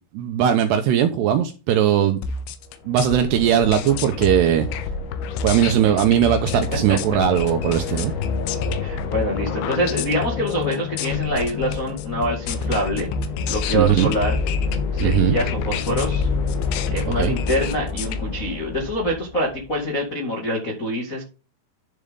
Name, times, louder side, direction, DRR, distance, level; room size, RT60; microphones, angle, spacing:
voice 1, 0.1-2.2 2.9-4.7 5.4-8.1 13.7-14.1 15.0-15.4 17.2-17.3, right 10 dB, 75° right, 2.6 m, -19 dB
sound 1, 2.2-18.2, left 3 dB, 80° left, 3.3 m, -30 dB
sound 2, 2.7-19.8, left 5 dB, 60° left, 3.2 m, -29 dB
voice 2, 8.8-13.1 13.5-14.3 14.9-16.3 16.9-21.2, equal, 40° left, 1.1 m, -25 dB
10.5 x 7.0 x 3.7 m
omnidirectional pair, 5.6 m